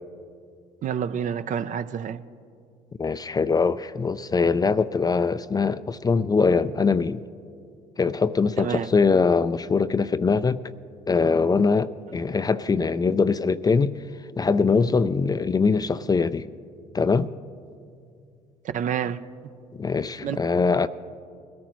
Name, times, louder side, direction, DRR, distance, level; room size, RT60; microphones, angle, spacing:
voice 1, 0.8-2.2 8.6-8.9 18.7-19.2 20.2-20.4, right 8 dB, 50° right, 12 dB, 0.6 m, -28 dB
voice 2, 3.0-7.2 8.0-10.6 11.1-14.0 14.4-16.4 16.9-17.3 19.7-20.9, left 4 dB, 20° left, 13 dB, 0.4 m, -22 dB
21.0 x 13.5 x 3.1 m, 2.3 s
hypercardioid pair, 65°, 17 cm